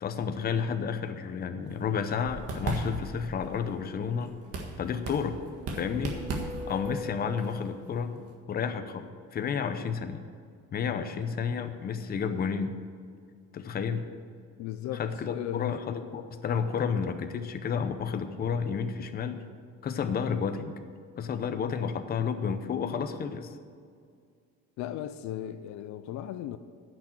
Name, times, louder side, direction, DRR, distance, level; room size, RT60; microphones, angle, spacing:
voice 1, 0.0-4.3 4.8-5.4 5.7-6.1 6.7-10.2 10.7-12.8 13.5-14.0 14.9-19.4 19.8-20.8 21.2-23.6, left 6 dB, 30° left, 0.7 m, -31 dB
sound 1, 1.6-8.3, right 2 dB, 50° right, 1.7 m, -38 dB
sound 2, 5.3-8.1, left 2 dB, 30° right, 0.5 m, -42 dB
voice 2, 14.6-15.7 24.8-26.6, left 11 dB, 70° left, 0.5 m, -36 dB
10.5 x 6.3 x 9.0 m
cardioid pair, 165°, 30 cm